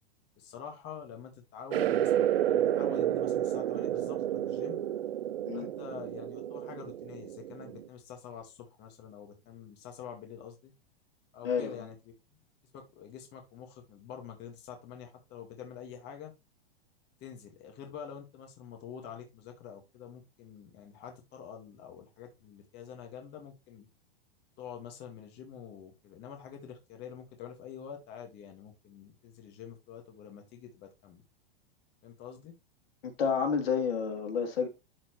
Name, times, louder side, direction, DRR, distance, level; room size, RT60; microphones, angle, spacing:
voice 1, 0.4-4.8 5.5-10.7 11.3-12.0 12.3-12.4 12.7-16.3 17.2-23.9 24.6-31.2 32.0-32.5, left 8 dB, 35° left, 1.9 m, -46 dB
sound 1, 1.7-7.9, right 11 dB, 75° right, 1.1 m, -30 dB
voice 2, 11.4-11.9 33.0-34.7, left 6 dB, 75° left, 3.0 m, -30 dB
12.5 x 4.4 x 3.1 m
hypercardioid pair, 120°, 30 cm